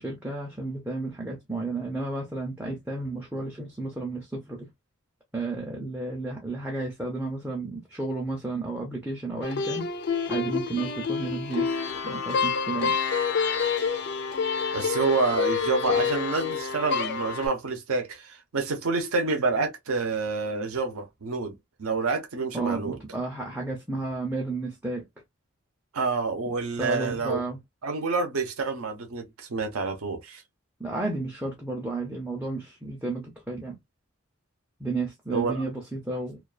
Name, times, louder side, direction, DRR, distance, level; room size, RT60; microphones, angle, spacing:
voice 1, 0.0-4.7 5.3-9.9 10.3-11.7 12.0-13.0 22.5-25.1 26.8-27.6 30.8-33.8 34.8-36.4, right 3 dB, 10° right, 0.4 m, -32 dB
sound 1, 9.4-17.5, left 5 dB, 50° left, 0.4 m, -28 dB
voice 2, 14.7-23.0 25.9-27.4 27.8-30.4 35.3-35.6, right 4 dB, 75° right, 0.7 m, -28 dB
2.3 x 2.3 x 2.4 m
head